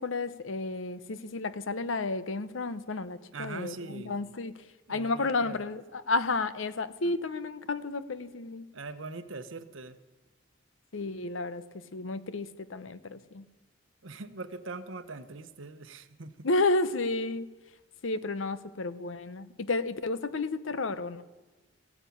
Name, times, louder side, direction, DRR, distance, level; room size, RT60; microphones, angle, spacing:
voice 1, 0.0-4.5 4.9-5.8 6.1-8.6 10.9-11.6 11.9-13.4 16.4-17.5 18.0-21.2, left 3 dB, 75° left, 14 dB, 0.8 m, -31 dB
voice 2, 3.3-4.2 4.9-5.6 7.0-7.2 8.7-10.0 14.0-16.5, right 3 dB, 75° right, 10 dB, 1.0 m, -42 dB
15.0 x 9.9 x 8.6 m, 1.2 s
head